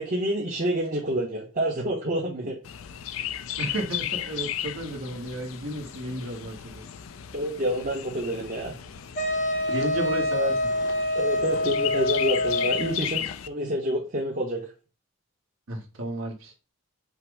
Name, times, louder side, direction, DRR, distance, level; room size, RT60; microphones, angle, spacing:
voice 1, 0.0-2.6 7.3-8.8 9.4-9.5 11.1-14.6, right 1 dB, 40° right, -3 dB, 0.9 m, -28 dB
Chirp tweet, 2.6-13.5, left 10 dB, 75° left, 0.4 m, -35 dB
voice 2, 3.6-6.8 9.7-10.6 15.7-16.5, right 1 dB, 70° right, 1 dB, 1.1 m, -32 dB
Wind instrument woodwind instrument, 9.2-13.0, left 1 dB, 40° left, 0.8 m, -26 dB
5.6 x 2.0 x 4.7 m, 0.33 s
head